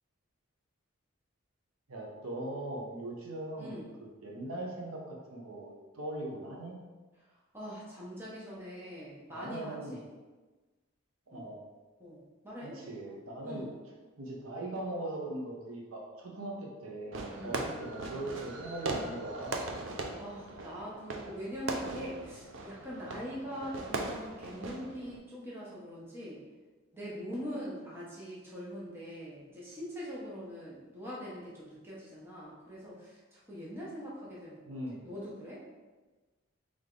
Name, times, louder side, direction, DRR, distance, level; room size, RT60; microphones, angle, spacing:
voice 1, 1.9-6.8 9.3-10.0 11.3-11.6 12.6-13.6 14.2-19.6 34.7-35.0, right 1 dB, 80° right, -1 dB, 0.8 m, -40 dB
voice 2, 3.6-3.9 7.5-10.0 11.3-11.5 12.0-12.8 13.0-13.2 13.4-13.7 17.3-17.6 20.2-26.4 26.9-35.6, equal, 10° right, -7 dB, 0.9 m, -43 dB
Fireworks, 17.1-25.2, right 2 dB, 60° right, 0.5 m, -39 dB
3.5 x 3.3 x 3.8 m, 1.3 s
head